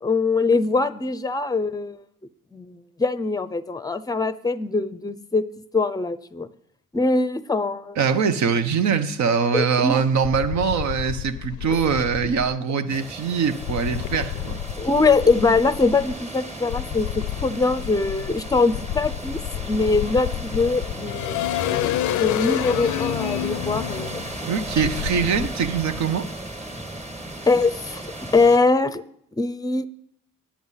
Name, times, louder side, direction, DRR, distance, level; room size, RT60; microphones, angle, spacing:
voice 1, 0.0-2.0 2.5-5.4 5.7-6.5 6.9-8.0 9.5-10.0 14.8-19.4 19.7-24.1 27.5-28.0 28.3-29.0 29.4-29.9, left 3 dB, 10° left, 0.6 m, -22 dB
voice 2, 8.0-14.6 24.4-26.3, right 6 dB, 65° right, 1.0 m, -23 dB
sound 1, 10.2-12.5 13.6-16.2 16.7-25.5, left 14 dB, 75° left, 0.4 m, -29 dB
sound 2, 12.9-28.6, right 1 dB, 20° right, 1.6 m, -36 dB
9.4 x 8.6 x 5.6 m
cardioid pair, 90°, 30 cm